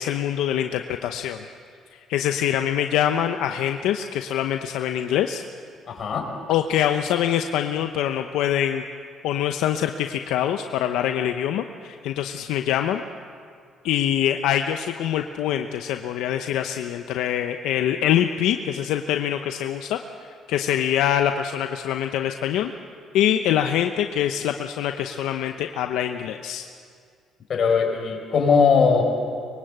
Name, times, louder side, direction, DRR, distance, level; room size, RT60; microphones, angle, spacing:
voice 1, 0.0-1.4 1.9-5.4 6.5-8.8 9.2-13.0 13.8-20.0 20.5-22.7 23.1-26.6, left 10 dB, 85° left, 6 dB, 0.9 m, -24 dB
voice 2, 5.9-6.3 27.5-29.0, left 5 dB, 50° left, 2 dB, 5.2 m, -19 dB
24.5 x 23.0 x 8.1 m, 2.2 s
cardioid pair, 95°, 0 cm